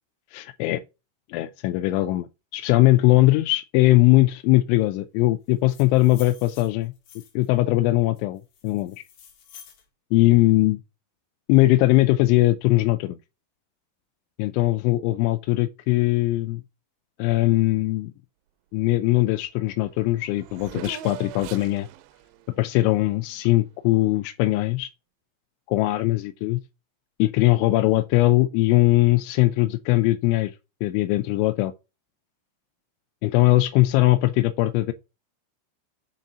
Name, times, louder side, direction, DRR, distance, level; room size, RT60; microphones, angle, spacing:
voice 1, 0.3-0.8 1.3-6.9 7.4-9.0 10.1-10.8 11.5-13.2 14.4-16.6 17.2-18.1 18.7-21.9 22.6-24.9 25.7-26.6 27.2-30.5 30.8-31.7 33.2-34.9, left 18 dB, 85° left, 2.9 m, -20 dB
sound 1, 5.5-7.5 8.1-9.8, left 8 dB, 60° left, 3.1 m, -49 dB
Race car auto racing / Accelerating revving vroom, 19.5-19.6 19.8-23.8, right 13 dB, 85° right, 2.4 m, -42 dB
7.2 x 3.9 x 5.4 m
omnidirectional pair, 5.6 m